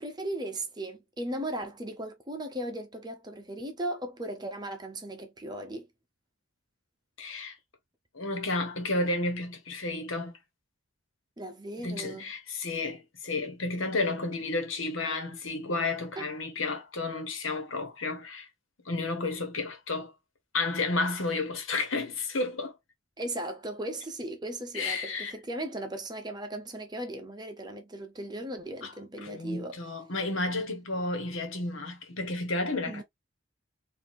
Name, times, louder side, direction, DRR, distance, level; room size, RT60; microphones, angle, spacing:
voice 1, 0.0-5.9 11.4-12.3 16.2-16.3 23.2-29.8 32.9-33.0, right 1 dB, 20° right, 0.8 m, -37 dB
voice 2, 7.2-7.6 8.1-10.3 11.8-18.5 18.8-20.1 20.5-22.7 24.7-25.3 28.8-28.9 29.2-33.0, left 2 dB, 75° left, 1.4 m, -32 dB
4.8 x 2.7 x 2.6 m
head